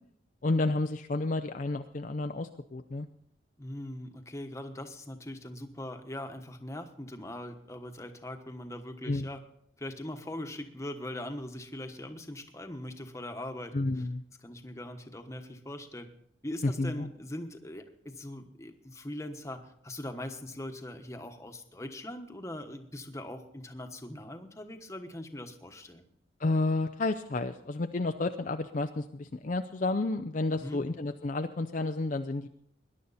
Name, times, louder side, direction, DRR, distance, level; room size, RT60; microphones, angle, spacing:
voice 1, 0.4-3.1 9.1-9.3 13.7-14.2 16.6-17.1 26.4-32.5, left 2 dB, 45° left, 6 dB, 0.5 m, -31 dB
voice 2, 3.6-9.4 9.8-14.1 14.4-16.1 16.4-26.0 30.5-30.8, left 1 dB, 15° left, 6 dB, 1.2 m, -41 dB
21.0 x 11.0 x 4.1 m, 0.69 s
head